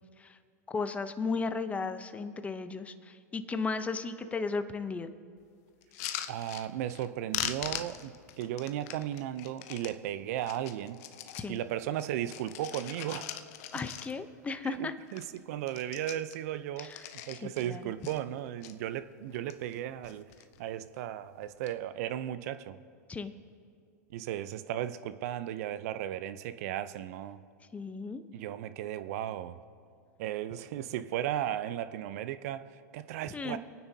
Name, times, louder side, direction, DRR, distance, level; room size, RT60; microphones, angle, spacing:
voice 1, 0.7-5.1 11.4-11.6 13.7-14.9 16.8-17.0 17.3-17.9 23.1-23.3 27.7-28.2 33.3-33.6, left 4 dB, 15° left, 10 dB, 0.7 m, -35 dB
sound 1, 5.8-7.1 7.3-10.0 10.4-11.6 11.9-14.4 14.8-14.9 15.1-15.4 15.6-17.7 18.0-18.7 19.3-19.8 20.0-20.6 21.4-21.7, left 11 dB, 60° left, 0.8 m, -41 dB
voice 2, 6.3-11.0 11.5-13.3 14.6-20.3 20.6-22.8 24.1-27.4 28.3-29.6 30.2-33.6, right 12 dB, 60° right, 13 dB, 0.6 m, -36 dB
27.5 x 9.5 x 2.8 m, 2.2 s
hypercardioid pair, 110°, 9 cm